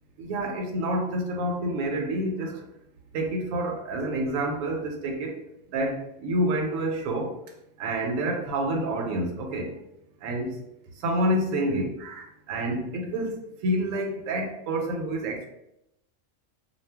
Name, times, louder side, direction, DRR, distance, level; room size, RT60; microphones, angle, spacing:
voice 1, 0.2-2.6 3.1-5.4 5.7-7.3 7.8-9.7 10.2-10.6 11.0-15.5, right 1 dB, 85° right, 3 dB, 1.0 m, -28 dB
2.3 x 2.0 x 3.3 m, 0.83 s
omnidirectional pair, 1.3 m